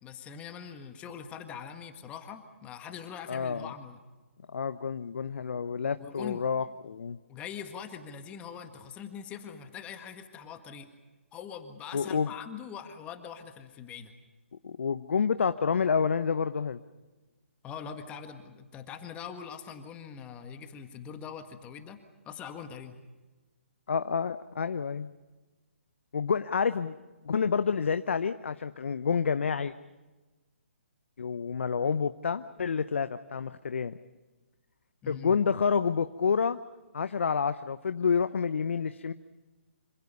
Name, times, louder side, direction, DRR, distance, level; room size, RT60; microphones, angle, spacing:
voice 1, 0.0-4.0 6.0-6.4 7.3-10.9 11.3-14.1 17.6-22.0 22.2-23.0 35.0-35.4, left 7 dB, 15° left, 7 dB, 1.7 m, -42 dB
voice 2, 3.3-3.7 4.5-7.2 11.9-12.3 14.6-16.8 23.9-25.1 26.1-27.0 27.3-29.7 31.2-34.0 35.1-36.6 36.9-39.1, left 6 dB, 65° left, 12 dB, 0.8 m, -28 dB
27.0 x 26.5 x 5.5 m, 1.2 s
figure-of-eight pair, 140°, 7 cm